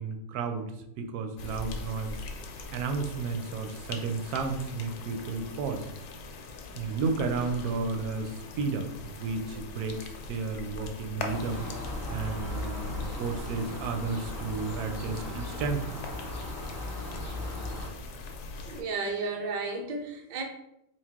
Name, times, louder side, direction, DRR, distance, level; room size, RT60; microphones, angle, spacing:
voice 1, 0.0-2.2 2.7-5.9 6.8-11.6 12.1-15.8, right 4 dB, 85° right, 5 dB, 1.1 m, -32 dB
sound 1, 1.4-18.8, left 3 dB, 90° left, 1.1 m, -41 dB
sound 2, 11.2-17.9, left 1 dB, 25° left, 0.3 m, -38 dB
voice 2, 18.7-20.4, right 3 dB, 65° right, 1 dB, 0.4 m, -33 dB
3.8 x 2.3 x 3.6 m, 0.83 s
omnidirectional pair, 1.6 m